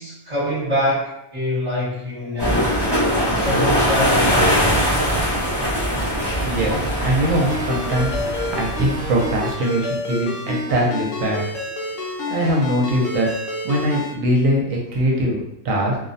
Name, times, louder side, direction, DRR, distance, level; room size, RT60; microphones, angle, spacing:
voice 1, 0.0-2.7 3.3-4.3, left 1 dB, 30° right, -11 dB, 1.0 m, -24 dB
sound 1, 2.4-9.5, equal, 45° left, 0.3 m, -21 dB
voice 2, 6.4-11.4 12.3-13.3 13.6-16.0, right 1 dB, 70° right, -1 dB, 1.0 m, -22 dB
Ringtone, 7.3-14.1, left 2 dB, 65° left, 0.9 m, -29 dB
2.5 x 2.0 x 2.5 m, 0.84 s
omnidirectional pair, 1.5 m